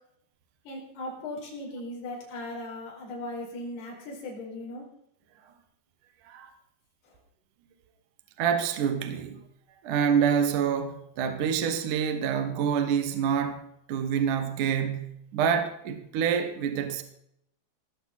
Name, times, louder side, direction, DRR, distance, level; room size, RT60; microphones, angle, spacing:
voice 1, 0.6-4.9 7.0-7.2, left 1 dB, 55° left, -3 dB, 6.5 m, -38 dB
voice 2, 8.4-9.4 9.8-13.6 13.9-17.0, right 7 dB, 65° right, 7 dB, 2.1 m, -27 dB
18.5 x 14.0 x 4.2 m, 0.74 s
omnidirectional pair, 5.7 m